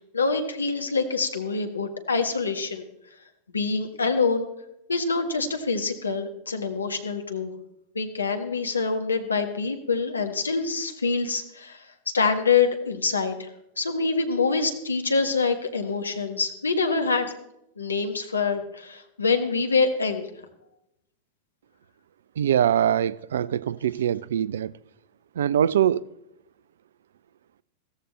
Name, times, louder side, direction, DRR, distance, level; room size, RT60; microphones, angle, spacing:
voice 1, 0.1-2.8 3.5-4.5 4.9-7.5 7.9-11.8 12.1-13.5 13.8-17.3 17.8-20.3, left 4 dB, 75° left, 1.4 m, -25 dB
voice 2, 22.4-24.7 25.4-26.0, right 10 dB, 60° right, 0.4 m, -23 dB
15.0 x 14.5 x 3.1 m
figure-of-eight pair, 90°, 0 cm